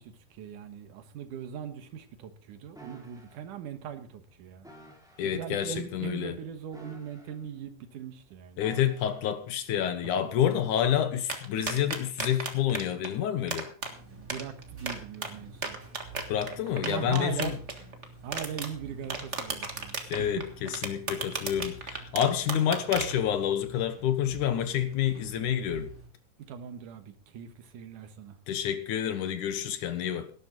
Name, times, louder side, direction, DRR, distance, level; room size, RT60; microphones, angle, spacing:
voice 1, 0.0-4.7 5.2-8.6 10.2-10.3 14.0-15.8 16.8-17.6 18.2-20.4 26.4-28.4, right 8 dB, 65° right, 2.7 m, -40 dB
sound 1, 2.7-3.4 4.6-5.3 6.7-7.6 8.6-9.3 10.5-10.7, right 2 dB, ahead, 4.1 m, -51 dB
voice 2, 5.2-6.4 8.6-13.7 16.3-17.6 20.1-25.9 28.5-30.3, left 10 dB, 70° left, 2.4 m, -28 dB
sound 2, 11.3-13.1 13.5-13.9 14.3-15.3 15.6-18.0 18.3-18.7 19.0-23.2, right 4 dB, 50° right, 0.8 m, -33 dB
sound 3, 13.8-26.1, right 3 dB, 25° right, 3.2 m, -48 dB
18.0 x 11.5 x 3.9 m
omnidirectional pair, 4.1 m